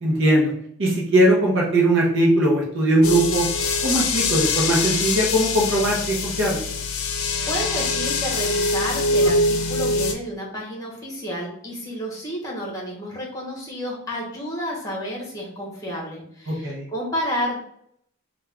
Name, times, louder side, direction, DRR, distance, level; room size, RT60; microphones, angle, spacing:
voice 1, 0.0-0.5 0.8-3.5 3.8-6.6 16.5-16.9, right 1 dB, 55° right, -2 dB, 0.8 m, -20 dB
sound 1, 3.0-10.1, left 3 dB, 65° left, 0.5 m, -23 dB
voice 2, 7.1-17.6, equal, 15° left, -4 dB, 1.1 m, -30 dB
3.4 x 2.4 x 3.4 m, 0.69 s
head